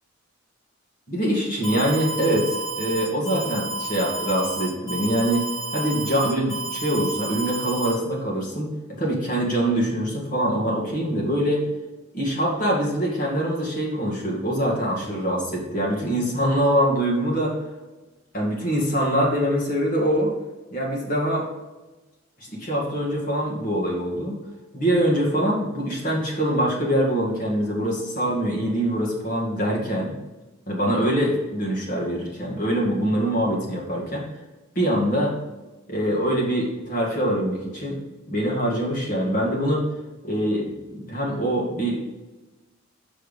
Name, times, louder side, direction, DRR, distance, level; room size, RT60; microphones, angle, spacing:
voice 1, 1.1-11.6 12.1-17.6 18.3-20.3 20.7-21.5 22.4-24.4 24.7-30.1 30.7-34.3 34.8-35.4 35.9-38.0 38.3-39.9 40.2-42.0, equal, 40° left, -3 dB, 2.0 m, -24 dB
Alarm, 1.6-7.9, right 2 dB, 20° left, 2.2 m, -31 dB
6.3 x 4.6 x 5.2 m, 1.1 s
head